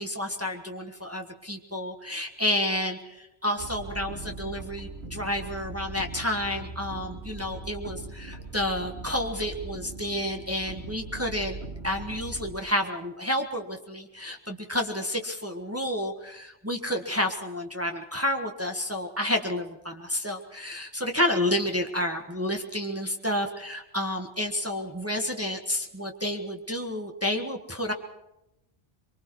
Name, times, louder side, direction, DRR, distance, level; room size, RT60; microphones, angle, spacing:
voice 1, 0.0-11.6 11.8-27.9, left 1 dB, 15° right, 3 dB, 1.5 m, -30 dB
sound 1, 3.6-12.6, right 2 dB, 80° right, 3.1 m, -40 dB
24.0 x 24.0 x 4.7 m, 0.89 s
omnidirectional pair, 1.1 m